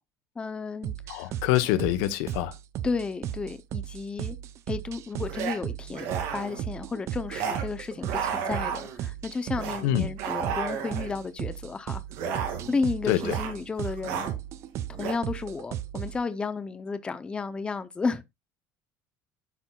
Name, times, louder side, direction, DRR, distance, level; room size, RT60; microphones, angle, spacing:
voice 1, 0.4-1.4 2.8-4.4 4.7-14.3 15.0-18.3, left 4 dB, 15° left, 0.5 m, -33 dB
sound 1, 0.8-16.2, right 11 dB, 40° right, 0.5 m, -36 dB
voice 2, 1.1-2.5 9.8-10.1 13.1-13.4, left 14 dB, 90° left, 0.9 m, -25 dB
sound 2, 3.3-3.5 5.2-5.6 5.9-6.6 7.3-7.7 8.0-9.1 9.5-9.8 10.2-11.2 12.1-12.8 13.1-13.6 13.8-14.3 14.9-15.1, right 7 dB, 85° right, 2.2 m, -32 dB
12.0 x 4.4 x 2.2 m
cardioid pair, 165°, 7 cm